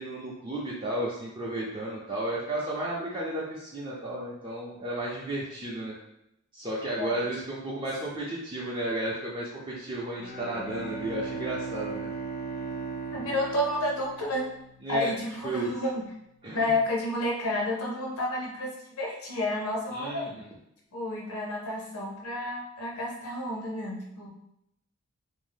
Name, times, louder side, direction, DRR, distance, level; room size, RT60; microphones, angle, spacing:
voice 1, 0.0-5.9 6.5-12.1 14.8-15.1 15.4-15.7 16.4-16.7 19.9-20.5, right 1 dB, 20° right, -6 dB, 0.4 m, -33 dB
Bowed string instrument, 10.1-15.0, right 4 dB, 45° left, 0.5 m, -37 dB
voice 2, 13.1-14.5 14.9-16.0 16.5-20.4 20.9-24.3, left 1 dB, 85° left, -2 dB, 0.7 m, -30 dB
2.6 x 2.0 x 3.3 m, 0.82 s
head